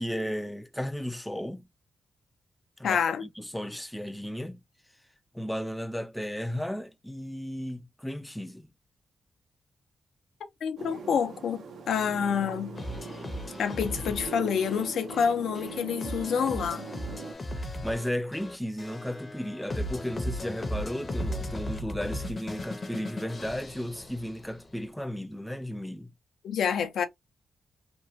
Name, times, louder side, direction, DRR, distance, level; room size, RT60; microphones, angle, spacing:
voice 1, 0.0-1.7 2.8-4.6 5.3-8.7 17.6-26.1, equal, 5° left, 0.3 m, -34 dB
voice 2, 2.8-3.2 10.6-12.8 13.6-16.9 26.4-27.0, left 7 dB, 85° left, 0.6 m, -28 dB
sound 1, 10.8-17.3, right 4 dB, 80° right, 0.7 m, -41 dB
sound 2, 12.8-24.7, left 1 dB, 35° left, 0.6 m, -37 dB
3.0 x 2.2 x 2.7 m
cardioid pair, 100°, 0 cm